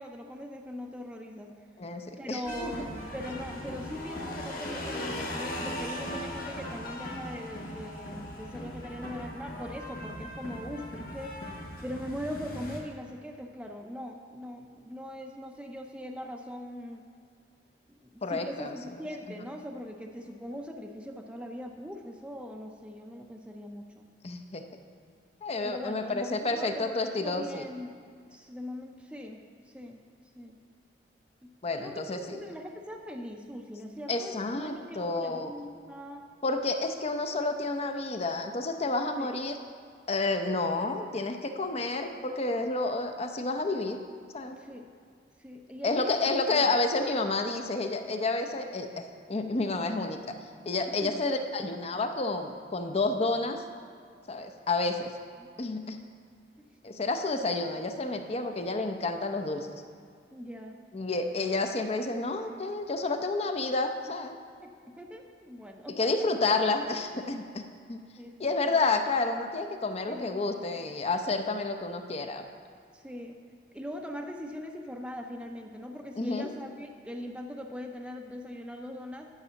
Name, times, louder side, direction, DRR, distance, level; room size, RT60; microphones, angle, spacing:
voice 1, 0.0-1.5 2.2-11.4 11.8-17.0 18.0-24.1 25.6-27.9 28.3-29.4 29.7-30.0 30.4-30.6 31.4-36.3 39.2-39.3 44.6-44.9 45.4-46.8 50.9-51.2 55.4-55.5 56.6-56.7 60.3-60.8 64.6-66.3 68.2-68.8 70.1-70.4 72.9-73.4 73.7-79.3, equal, 5° right, 2 dB, 0.6 m, -41 dB
voice 2, 1.8-2.8 18.2-18.8 24.2-24.6 25.4-27.7 31.6-32.4 34.1-35.5 36.4-39.6 40.1-44.0 44.3-44.6 45.8-48.9 49.3-50.3 50.7-53.6 54.3-55.1 55.6-56.0 56.8-59.8 60.9-64.4 65.9-67.6 67.9-68.0 68.4-72.4 76.2-76.5, left 3 dB, 35° left, 6 dB, 0.7 m, -30 dB
sound 1, 2.4-12.8, left 1 dB, 55° left, 1.6 m, -39 dB
9.8 x 5.5 x 6.9 m, 2.2 s
head